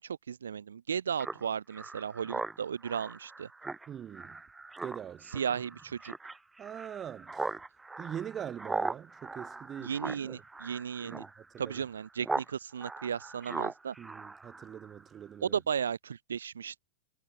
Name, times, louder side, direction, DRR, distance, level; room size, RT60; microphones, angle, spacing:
voice 1, 0.0-3.5 5.3-6.1 9.8-11.2 11.6-13.9 15.4-16.8, right 7 dB, 70° right, 1.1 m, -35 dB
Speech synthesizer, 1.2-12.5 12.8-15.0, right 3 dB, 10° right, 4.7 m, -40 dB
voice 2, 3.9-4.4 4.8-5.3 6.6-7.3 8.0-9.9 10.2-10.4 11.0-11.2 11.5-11.7 14.0-15.6, right 9 dB, 25° right, 1.7 m, -42 dB
figure-of-eight pair, 90°, 0 cm